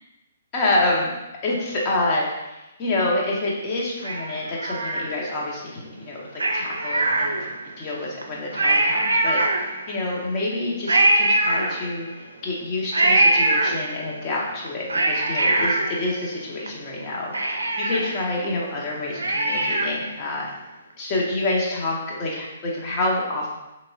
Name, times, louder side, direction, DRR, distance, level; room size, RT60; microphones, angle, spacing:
voice 1, 0.5-1.1 1.4-12.1 12.4-20.5 21.0-23.5, left 2 dB, 30° left, -3 dB, 0.9 m, -27 dB
Cat, 4.0-5.5 6.3-7.8 8.2-8.3 8.5-10.0 10.9-12.2 12.9-14.2 14.7-16.7 17.0-17.1 17.3-20.1 20.5-20.6, right 2 dB, 80° right, 0.4 m, -22 dB
3.5 x 3.0 x 2.7 m, 1.0 s
figure-of-eight pair, 130°, 0 cm